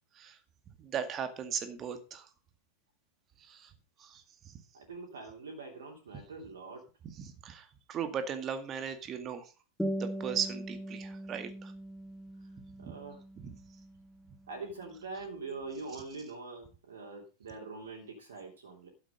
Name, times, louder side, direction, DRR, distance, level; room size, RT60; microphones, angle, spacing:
voice 1, 0.8-2.2 3.5-3.7 4.0-4.5 7.2-9.5 10.0-11.7 12.8-12.9 13.4-13.5, right 7 dB, 30° right, 8 dB, 2.1 m, -37 dB
voice 2, 4.7-6.8 12.8-13.2 14.5-18.9, right 3 dB, 65° right, 0 dB, 3.1 m, -43 dB
sound 1, 9.8-14.8, equal, 5° left, 2.0 m, -40 dB
12.5 x 8.2 x 5.2 m, 0.33 s
figure-of-eight pair, 90°, 0 cm